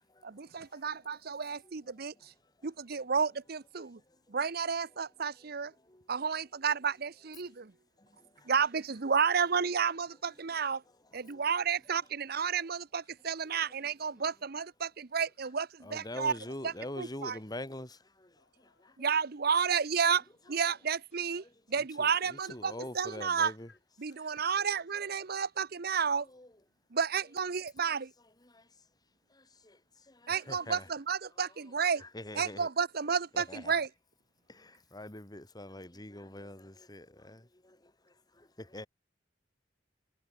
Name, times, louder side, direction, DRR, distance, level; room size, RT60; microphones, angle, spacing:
voice 1, 0.2-2.1 2.6-4.0 4.3-5.7 6.1-7.7 8.5-10.8 11.1-16.3 16.6-17.4 19.0-20.2 20.5-23.5 24.0-26.3 26.9-28.1 30.3-32.0 32.3-33.9, right 6 dB, 60° right, 0.8 m, -31 dB
voice 2, 13.2-13.7 15.8-18.3 18.8-18.9 21.4-21.5 21.8-23.7 24.2-24.7 26.3-26.5 28.4-28.6 29.6-29.8 30.1-30.9 32.0-32.7 33.3-33.7 34.5-37.8 38.7-38.9, left 1 dB, 20° left, 3.0 m, -44 dB
voice 3, 18.4-19.1 21.1-21.2 22.6-22.7 23.2-23.8 24.1-24.4, left 4 dB, 75° left, 6.0 m, -65 dB
head